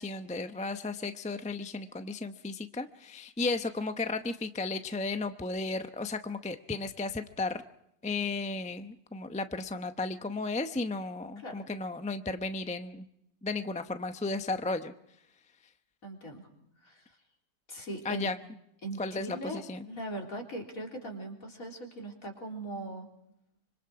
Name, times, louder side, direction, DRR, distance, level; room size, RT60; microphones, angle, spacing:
voice 1, 0.0-7.6 8.0-13.1 13.4-14.9 18.0-18.4 19.0-19.8, left 3 dB, 10° left, 8 dB, 0.4 m, -34 dB
voice 2, 16.0-16.4 16.8-17.1 17.7-18.3 18.8-19.6 19.9-23.1, right 1 dB, 55° left, 1 dB, 4.2 m, -40 dB
26.0 x 25.0 x 4.8 m, 0.78 s
omnidirectional pair, 1.8 m